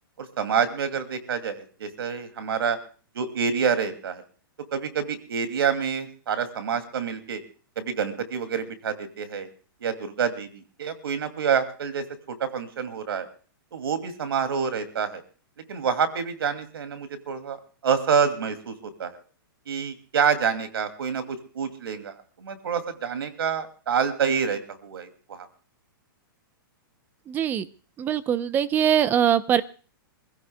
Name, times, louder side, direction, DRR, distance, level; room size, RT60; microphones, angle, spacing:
voice 1, 0.2-2.8 3.1-4.2 4.7-7.4 7.8-9.5 9.8-13.3 13.7-15.2 15.7-17.6 17.8-19.1 19.7-25.5, right 6 dB, 85° right, 9 dB, 2.6 m, -27 dB
voice 2, 27.3-27.7 28.0-29.6, right 9 dB, 15° right, 15 dB, 0.7 m, -22 dB
26.0 x 16.0 x 2.3 m, 0.40 s
hypercardioid pair, 160°, 12 cm